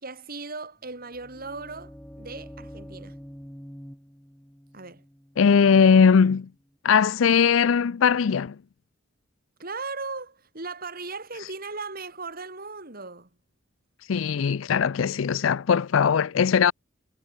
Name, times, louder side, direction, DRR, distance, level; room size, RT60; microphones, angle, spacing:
voice 1, 0.0-3.2 4.7-5.0 9.6-13.3, right 3 dB, 50° right, 4.5 m, -37 dB
sound 1, 0.8-6.7, equal, 5° left, 1.7 m, -46 dB
voice 2, 5.4-6.5 6.8-8.6 14.1-16.7, left 6 dB, 85° left, 0.5 m, -20 dB
head